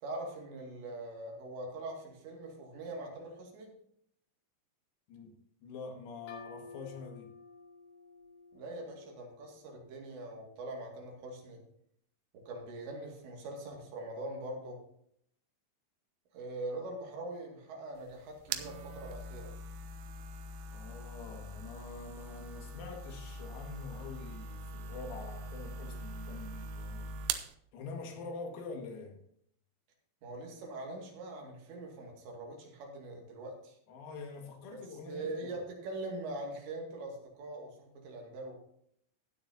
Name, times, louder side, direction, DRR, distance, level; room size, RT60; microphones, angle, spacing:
voice 1, 0.0-3.7 8.5-11.6 12.3-14.8 16.3-19.5 30.2-33.8 34.7-34.8 35.1-38.6, right 2 dB, 65° right, 0 dB, 4.3 m, -42 dB
voice 2, 5.1-7.3 20.7-27.2 27.7-29.2 33.9-35.5, left 4 dB, 90° left, 2 dB, 4.8 m, -45 dB
sound 1, 6.3-9.8, left 3 dB, 45° left, 3.0 m, -53 dB
sound 2, 18.0-27.6, right 3 dB, 90° right, 3.5 m, -42 dB
16.0 x 9.6 x 2.8 m, 0.69 s
omnidirectional pair, 5.9 m